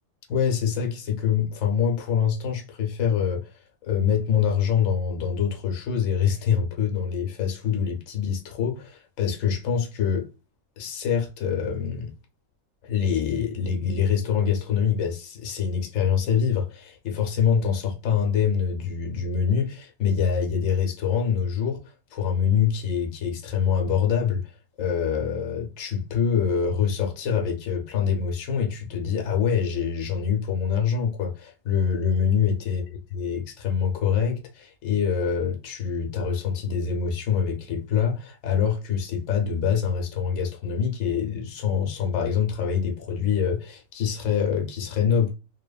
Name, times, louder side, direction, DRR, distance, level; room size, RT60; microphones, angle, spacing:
voice 1, 0.3-10.3 10.8-12.1 12.8-32.8 33.1-45.3, left 7 dB, 70° left, 1.1 m, -25 dB
2.8 x 2.2 x 2.3 m
omnidirectional pair, 1.5 m